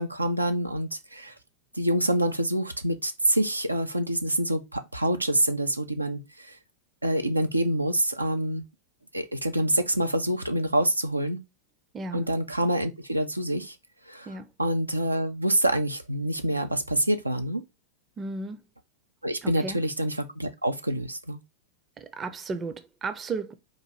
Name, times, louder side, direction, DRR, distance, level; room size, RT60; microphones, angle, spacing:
voice 1, 0.0-1.3 1.7-6.6 7.0-8.6 9.1-11.4 12.1-13.8 14.1-14.3 14.6-17.6 19.2-21.4, right 1 dB, 85° right, 0.4 m, -26 dB
voice 2, 11.9-12.2 14.3-14.5 18.2-18.6 19.4-19.8 22.0-23.5, right 3 dB, 20° right, 0.5 m, -34 dB
3.9 x 2.5 x 4.6 m
figure-of-eight pair, 90°, 0 cm